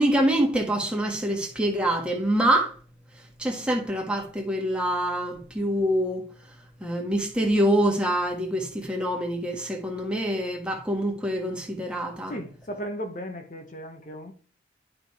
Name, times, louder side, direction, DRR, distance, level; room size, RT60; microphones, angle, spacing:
voice 1, 0.0-2.7 3.4-6.2 6.8-12.3, right 1 dB, 5° right, 1.5 m, -25 dB
voice 2, 12.3-14.3, equal, 45° left, 1.0 m, -36 dB
11.0 x 3.8 x 4.8 m
head